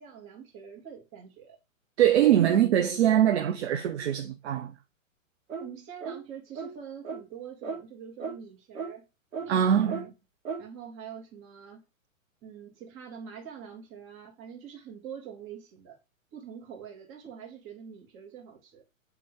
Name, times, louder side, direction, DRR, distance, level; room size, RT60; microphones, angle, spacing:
voice 1, 0.0-1.6 5.6-9.1 9.4-10.1 10.6-11.8 12.4-16.0 16.3-18.8, right 8 dB, 30° right, 2.5 m, -45 dB
voice 2, 2.0-4.7 9.5-10.0, right 10 dB, 50° right, 1.0 m, -23 dB
sound 1, 5.5-5.7 6.0-6.2 6.5-6.7 7.0-7.2 7.6-7.8 8.2-8.4 8.7-8.9 9.3-9.5 9.9-10.1 10.4-10.6, right 5 dB, 70° right, 2.6 m, -35 dB
7.8 x 3.8 x 3.7 m
figure-of-eight pair, 110°, 41 cm